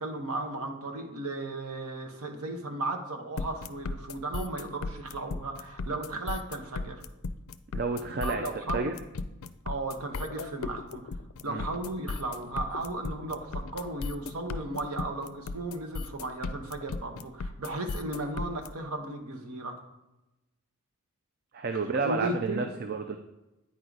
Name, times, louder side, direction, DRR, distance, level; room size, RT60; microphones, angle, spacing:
voice 1, 0.0-7.0 8.2-8.9 9.6-11.0 11.4-19.8 22.0-22.7, right 2 dB, 85° right, 4 dB, 1.0 m, -35 dB
sound 1, 3.4-18.7, left 3 dB, 75° left, 0.4 m, -36 dB
voice 2, 7.7-8.5 8.7-8.9 11.5-11.6 21.5-23.2, right 4 dB, 45° right, 6 dB, 0.4 m, -30 dB
8.9 x 4.6 x 3.9 m, 0.99 s
head